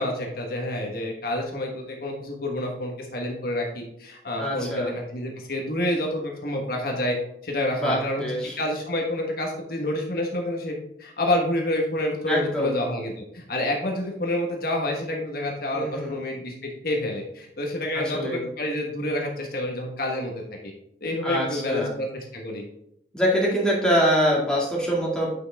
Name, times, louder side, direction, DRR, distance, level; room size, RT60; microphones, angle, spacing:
voice 1, 0.0-7.2 7.4-20.3 21.0-22.6, left 1 dB, 55° left, 0 dB, 1.3 m, -28 dB
voice 2, 4.4-4.9 7.8-8.6 12.3-12.7 15.7-16.2 17.9-18.4 21.2-21.9 23.1-25.3, equal, 5° left, -5 dB, 2.1 m, -24 dB
9.0 x 5.8 x 3.5 m, 0.78 s
head